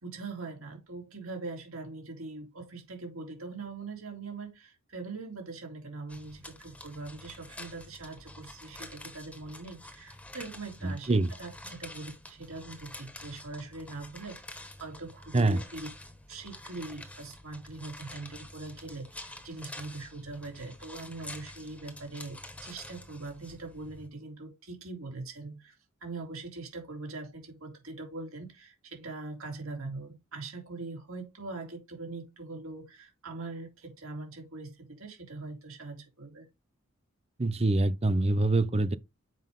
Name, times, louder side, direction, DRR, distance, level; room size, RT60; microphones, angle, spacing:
voice 1, 0.0-15.9 16.3-25.7 26.0-36.5, right 3 dB, 75° right, 3.3 m, -42 dB
sound 1, 6.1-24.1, left 1 dB, 5° left, 1.4 m, -48 dB
voice 2, 10.8-11.3 15.3-15.6 37.4-39.0, right 2 dB, 30° right, 0.5 m, -25 dB
7.6 x 5.3 x 3.7 m
head